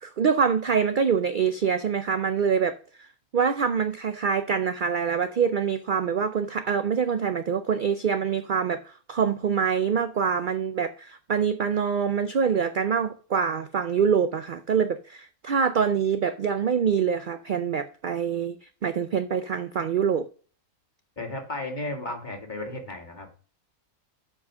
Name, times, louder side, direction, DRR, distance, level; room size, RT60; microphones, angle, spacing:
voice 1, 0.0-3.1 3.3-18.6 18.8-20.3, right 6 dB, 65° right, 0.5 m, -25 dB
voice 2, 21.2-23.4, left 2 dB, 30° left, 2.3 m, -34 dB
7.3 x 5.5 x 6.0 m
omnidirectional pair, 1.5 m